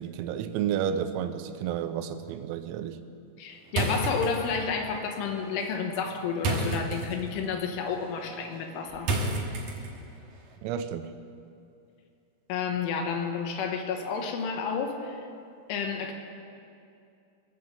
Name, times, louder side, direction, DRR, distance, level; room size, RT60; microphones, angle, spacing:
voice 1, 0.0-3.0 10.6-11.1, right 9 dB, 85° right, 9 dB, 3.4 m, -31 dB
voice 2, 3.4-9.1 12.5-15.3 15.7-16.1, left 6 dB, 80° left, 4 dB, 3.4 m, -31 dB
sound 1, 3.7-10.2, right 2 dB, 65° right, 1.9 m, -33 dB
21.5 x 7.8 x 7.6 m, 2.5 s
omnidirectional pair, 5.9 m